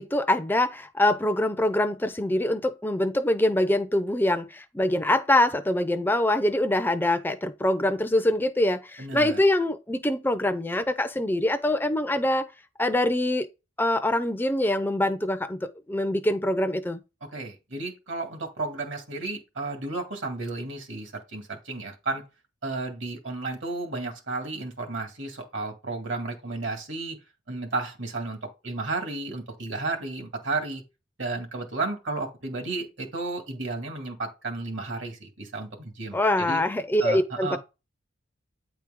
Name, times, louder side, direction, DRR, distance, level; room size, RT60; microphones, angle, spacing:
voice 1, 0.0-12.5 12.8-13.5 13.8-17.0 36.1-37.6, left 1 dB, 10° left, 0.4 m, -24 dB
voice 2, 9.0-9.4 17.3-22.2 22.6-27.2 27.5-30.8 31.2-36.6 37.0-37.6, right 3 dB, 70° right, 1.9 m, -33 dB
9.0 x 4.5 x 3.6 m
head